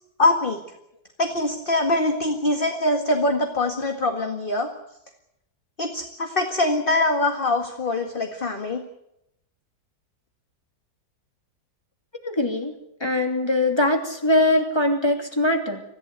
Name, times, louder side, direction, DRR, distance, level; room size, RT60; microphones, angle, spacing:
voice 1, 0.2-0.6 1.2-4.7 5.8-8.8, left 2 dB, 30° left, 5 dB, 1.9 m, -23 dB
voice 2, 12.2-12.7 13.0-15.8, left 1 dB, 15° left, 4 dB, 2.9 m, -22 dB
25.5 x 15.5 x 9.6 m, 0.83 s
omnidirectional pair, 2.0 m